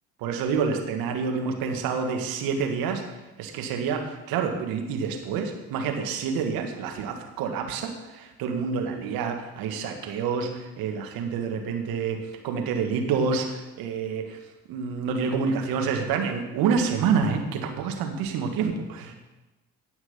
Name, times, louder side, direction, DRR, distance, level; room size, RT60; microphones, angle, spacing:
voice 1, 0.2-3.0 3.4-14.4 14.7-19.1, right 5 dB, 65° right, 4 dB, 2.1 m, -28 dB
18.0 x 6.1 x 5.7 m, 1.1 s
hypercardioid pair, 60°, 38 cm